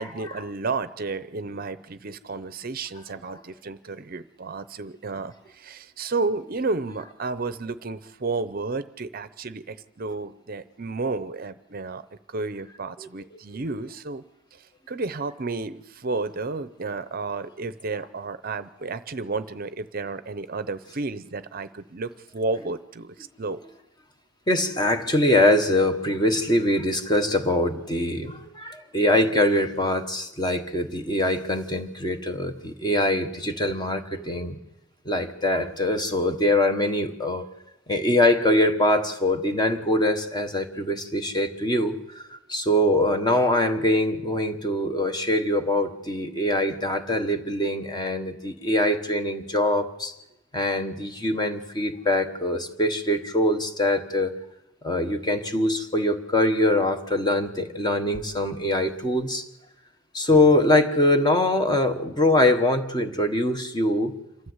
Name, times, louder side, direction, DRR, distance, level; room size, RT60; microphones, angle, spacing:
voice 1, 0.0-14.2 14.5-23.6 60.3-60.6, right 3 dB, 45° right, 13 dB, 0.7 m, -32 dB
voice 2, 24.5-34.6 35.0-37.5 37.9-42.2 42.5-50.1 50.5-54.3 54.8-59.4 60.1-64.2, left 1 dB, 20° left, 7 dB, 1.3 m, -23 dB
27.0 x 13.0 x 8.0 m, 0.94 s
head